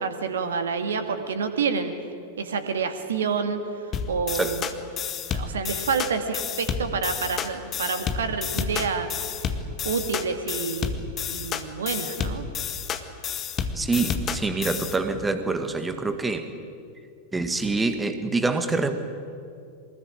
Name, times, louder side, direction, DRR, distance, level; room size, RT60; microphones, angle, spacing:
voice 1, 0.0-1.9 2.4-4.7 5.3-9.1 9.8-12.5, right 5 dB, 65° right, 8 dB, 2.2 m, -28 dB
sound 1, 3.9-15.0, left 7 dB, 30° left, 1.7 m, -30 dB
voice 2, 13.8-16.5 17.3-19.0, right 3 dB, 10° right, 8 dB, 1.9 m, -26 dB
23.5 x 20.5 x 9.0 m, 2.4 s
figure-of-eight pair, 90°, 0 cm